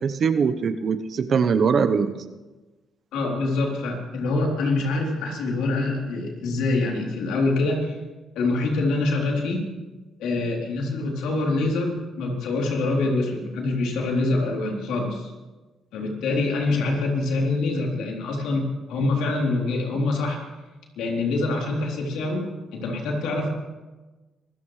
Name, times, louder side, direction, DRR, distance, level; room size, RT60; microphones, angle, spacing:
voice 1, 0.0-2.1, right 6 dB, 55° right, 9 dB, 1.0 m, -22 dB
voice 2, 3.1-8.0 8.4-9.6 10.2-15.3 15.9-20.4 21.0-22.4 22.7-23.5, left 2 dB, 90° left, -1 dB, 3.6 m, -25 dB
25.0 x 14.5 x 3.3 m, 1.2 s
cardioid pair, 90°, 0 cm